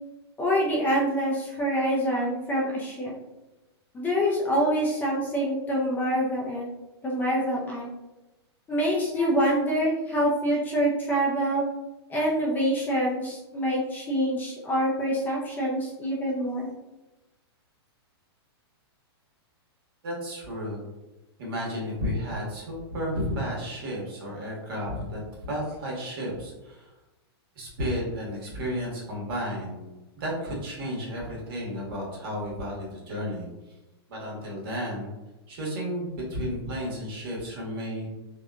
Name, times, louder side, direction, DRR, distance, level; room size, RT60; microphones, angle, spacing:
voice 1, 0.4-3.1 3.9-6.7 7.0-7.9 8.7-11.6 12.1-16.7, equal, 15° left, -4 dB, 0.4 m, -26 dB
voice 2, 20.0-20.8 21.4-26.9 27.6-29.8 30.2-33.5 34.1-35.1 35.5-38.1, equal, 55° right, -3 dB, 1.2 m, -32 dB
2.8 x 2.1 x 2.3 m, 1.0 s
hypercardioid pair, 145°, 14 cm